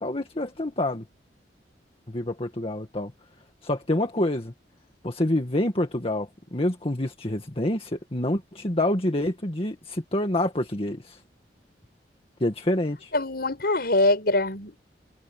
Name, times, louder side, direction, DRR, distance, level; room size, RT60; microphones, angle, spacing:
voice 1, 0.0-1.0 2.1-3.1 3.6-4.5 5.0-11.2 12.4-13.1, left 1 dB, 35° left, 2.0 m, -27 dB
voice 2, 13.1-14.9, left 2 dB, 60° left, 6.8 m, -23 dB
head